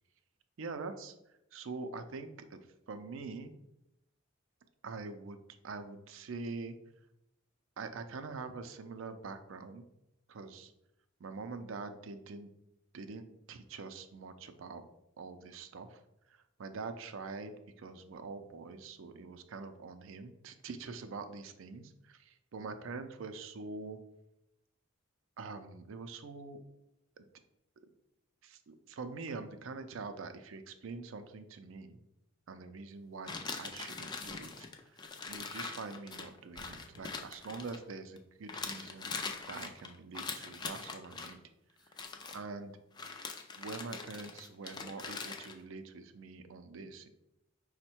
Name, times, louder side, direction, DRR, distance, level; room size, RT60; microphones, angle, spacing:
voice 1, 0.6-1.1 1.5-2.6 2.9-3.5 4.8-5.4 5.6-6.8 7.8-9.8 10.3-10.7 11.2-12.5 12.9-14.8 15.2-16.0 16.3-24.0 25.4-26.6 27.2-27.3 28.4-32.0 32.5-35.0 35.3-41.4 41.8-42.0 42.3-42.8 43.2-47.1, right 4 dB, 60° right, 9 dB, 0.4 m, -44 dB
sound 1, 33.3-38.2 38.5-41.3 41.9-42.4 43.0-45.5, left 4 dB, 20° left, 0.3 m, -42 dB
Explosion, 36.5-38.4, equal, 55° left, 0.7 m, -61 dB
5.3 x 2.1 x 4.3 m, 0.86 s
head